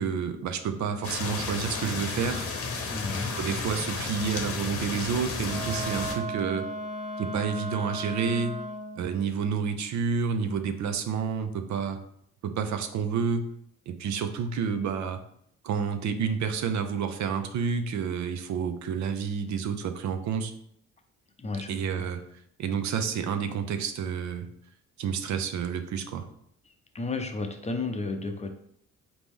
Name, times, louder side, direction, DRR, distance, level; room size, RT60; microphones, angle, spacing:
voice 1, 0.0-2.5 3.4-6.7 7.2-8.6 9.0-12.0 12.4-13.5 13.9-15.2 15.6-20.5 21.7-22.2 22.6-24.5 25.0-26.3, right 6 dB, 65° right, 8 dB, 0.6 m, -29 dB
sound 1, 1.0-6.1, left 4 dB, 50° left, 0.9 m, -32 dB
voice 2, 2.9-3.3 21.4-21.7 22.0-22.1 26.9-28.5, left 3 dB, 20° left, 5 dB, 0.5 m, -32 dB
Wind instrument woodwind instrument, 5.4-9.1, right 1 dB, 25° right, 0.7 m, -36 dB
4.0 x 3.0 x 3.6 m, 0.69 s
cardioid pair, 90°, 30 cm